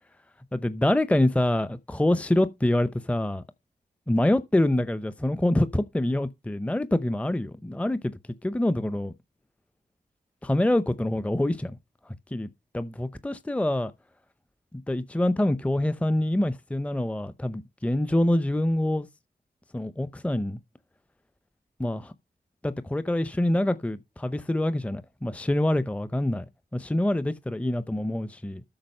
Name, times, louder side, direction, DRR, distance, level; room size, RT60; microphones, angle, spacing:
voice 1, 0.5-3.4 4.1-9.1 10.4-11.8 12.3-13.9 14.7-19.1 19.7-20.6 21.8-22.1 22.6-26.4 26.7-28.6, left 1 dB, 10° left, 0.7 m, -26 dB
8.8 x 6.1 x 5.4 m
cardioid pair, 60°, 17 cm